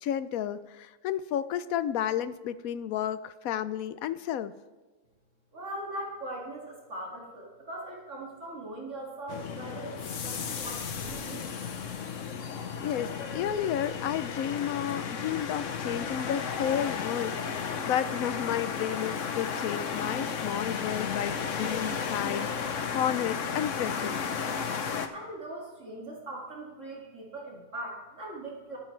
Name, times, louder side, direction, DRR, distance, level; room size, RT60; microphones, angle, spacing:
voice 1, 0.0-4.5 12.8-24.2, left 10 dB, 80° left, 14 dB, 1.1 m, -32 dB
voice 2, 5.5-11.5 25.1-28.8, right 1 dB, 60° right, -3 dB, 2.7 m, -40 dB
sound 1, 9.3-25.1, left 6 dB, 60° left, 1.3 m, -34 dB
23.5 x 9.5 x 3.3 m, 1.3 s
omnidirectional pair, 1.5 m